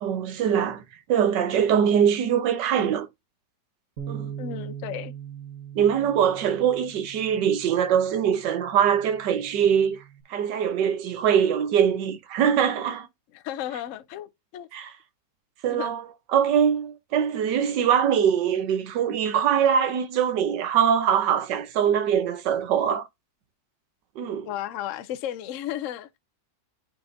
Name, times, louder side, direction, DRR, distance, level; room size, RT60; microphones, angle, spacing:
voice 1, 0.0-0.8 1.1-3.1 4.1-4.3 5.7-10.0 10.3-13.1 14.7-14.9 15.6-16.0 16.3-23.1 24.2-24.5, right 8 dB, 75° right, 1.5 m, -23 dB
Bass guitar, 4.0-10.2, right 9 dB, 50° right, 1.7 m, -41 dB
voice 2, 4.4-5.1 13.3-14.7 15.7-15.9 24.4-26.2, left 11 dB, 65° left, 0.8 m, -34 dB
10.0 x 4.1 x 2.6 m
omnidirectional pair, 1.9 m